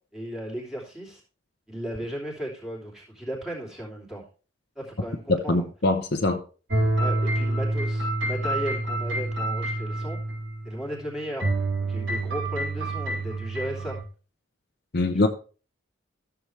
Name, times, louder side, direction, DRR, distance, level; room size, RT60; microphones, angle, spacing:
voice 1, 0.1-1.2 1.7-4.2 4.7-5.7 7.0-10.2 10.6-11.5 11.9-14.0 14.9-15.3, right 1 dB, ahead, 2.9 m, -35 dB
voice 2, 5.3-6.4 14.9-15.3, left 2 dB, 50° left, 0.7 m, -23 dB
sound 1, 6.7-11.0 11.4-14.0, right 2 dB, 60° right, 4.0 m, -27 dB
13.0 x 6.9 x 3.2 m
head